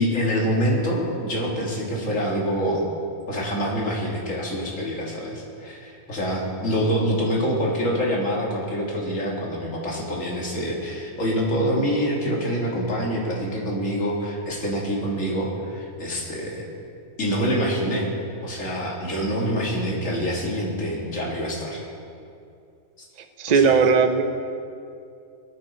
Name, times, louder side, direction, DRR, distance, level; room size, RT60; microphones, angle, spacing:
voice 1, 0.0-2.8 3.3-16.6 17.2-18.1 18.4-21.8 23.5-23.9, equal, 65° left, -3 dB, 2.7 m, -26 dB
voice 2, 23.4-24.2, right 5 dB, 40° right, 7 dB, 0.7 m, -17 dB
18.5 x 11.0 x 4.3 m, 2.5 s
omnidirectional pair, 1.5 m